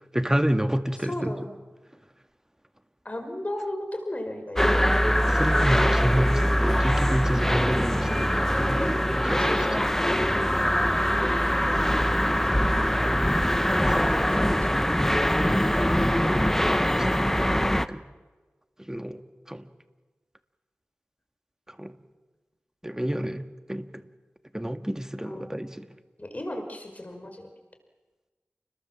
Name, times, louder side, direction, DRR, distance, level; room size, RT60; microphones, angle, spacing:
voice 1, 0.1-1.3 5.0-9.8 13.9-14.1 17.0-18.0 18.8-19.7 21.7-21.9 22.8-24.1 24.5-25.9, equal, 10° right, 8 dB, 1.8 m, -29 dB
voice 2, 1.0-1.5 3.0-4.8 8.5-8.9 9.3-9.8 11.7-13.2 14.0-14.7 15.4-16.2 25.2-25.5 26.2-27.5, left 1 dB, 35° left, 5 dB, 5.2 m, -36 dB
sound 1, 4.6-17.9, equal, 10° left, 1.1 m, -23 dB
30.0 x 21.0 x 7.5 m, 1.3 s
wide cardioid pair, 45°, 4 cm